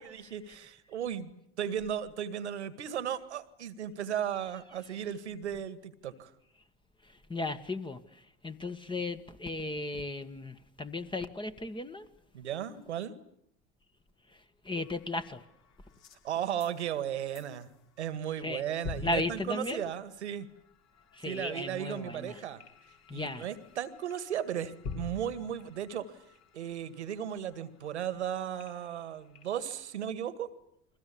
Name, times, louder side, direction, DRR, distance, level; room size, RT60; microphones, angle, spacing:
voice 1, 0.0-6.3 12.3-13.2 16.2-17.7 18.0-20.5 21.3-22.6 23.1-26.1 26.5-30.5, right 9 dB, 85° right, 2.0 m, -35 dB
voice 2, 7.0-12.1 14.3-15.5 18.4-18.6 19.0-19.9 21.1-22.4 23.1-23.5, left 2 dB, 15° left, 1.7 m, -36 dB
sound 1, 14.7-18.0 18.3-18.6 18.8-30.0, left 4 dB, 50° left, 4.6 m, -49 dB
29.5 x 22.0 x 8.6 m
hypercardioid pair, 80°, 33 cm